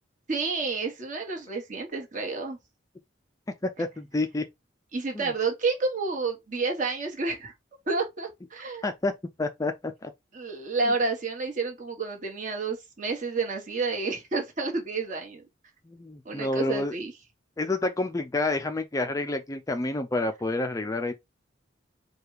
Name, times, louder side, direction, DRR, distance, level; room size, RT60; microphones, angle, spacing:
voice 1, 0.3-2.6 4.9-7.5 7.9-8.9 10.3-15.4 16.2-17.1, right 3 dB, 40° right, 1.3 m, -30 dB
voice 2, 3.6-4.5 5.1-5.3 8.8-9.1 9.4-10.1 15.9-16.9 17.6-21.1, left 2 dB, 15° left, 0.4 m, -29 dB
4.8 x 2.3 x 4.8 m
head